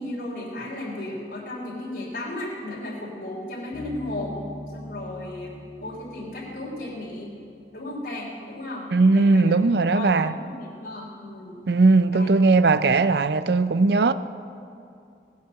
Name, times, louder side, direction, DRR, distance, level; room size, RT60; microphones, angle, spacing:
voice 1, 0.0-5.5 5.8-7.4 7.7-9.5 9.9-11.6 12.1-12.3, left 1 dB, 55° left, 3.2 m, -35 dB
Bass guitar, 3.7-7.4, left 1 dB, 10° right, 2.6 m, -41 dB
voice 2, 8.9-10.3 11.7-14.1, right 3 dB, 70° right, 0.5 m, -18 dB
19.0 x 7.3 x 7.6 m
head